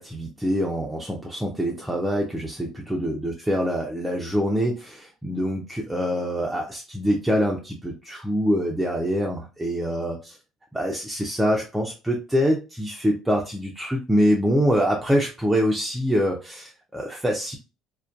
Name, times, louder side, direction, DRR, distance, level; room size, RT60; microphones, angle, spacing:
voice 1, 0.0-10.4 10.7-17.6, equal, 10° right, -1 dB, 0.5 m, -25 dB
2.4 x 2.2 x 2.3 m, 0.32 s
hypercardioid pair, 70°, 0 cm